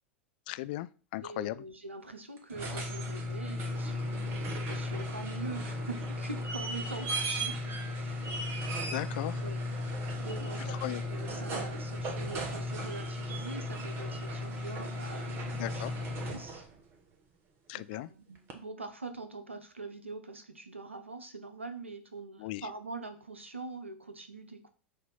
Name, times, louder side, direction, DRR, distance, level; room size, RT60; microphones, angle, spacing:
voice 1, 0.5-1.6 8.9-9.4 10.6-11.0 15.5-15.9 17.7-18.1 22.4-22.7, left 16 dB, 50° left, 0.4 m, -37 dB
voice 2, 1.2-8.4 9.4-9.6 10.2-10.8 11.0-15.8 16.2-16.7 17.7-24.7, right 3 dB, 85° right, 0.9 m, -44 dB
sound 1, 2.4-16.8 18.5-18.6, left 1 dB, 40° right, 1.3 m, -35 dB
6.5 x 2.8 x 5.5 m
figure-of-eight pair, 90°, 6 cm